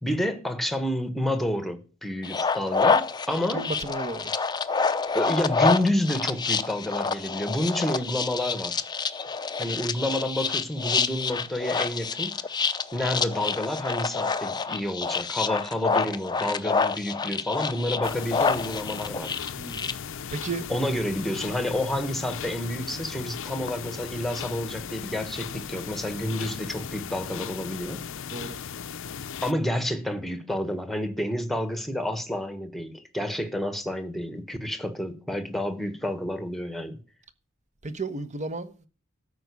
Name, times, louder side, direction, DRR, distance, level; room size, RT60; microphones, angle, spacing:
voice 1, 0.0-3.6 5.1-8.8 9.6-12.3 12.9-19.3 20.7-28.0 29.4-37.0, left 1 dB, ahead, 1.2 m, -29 dB
sound 1, 2.2-19.9, left 5 dB, 20° left, 0.6 m, -27 dB
voice 2, 3.5-4.3 19.6-20.0 20.3-20.7 28.3-28.6 37.8-38.9, right 3 dB, 35° right, 1.0 m, -33 dB
sound 2, 18.0-29.5, left 7 dB, 65° left, 0.6 m, -37 dB
13.0 x 5.1 x 8.1 m
head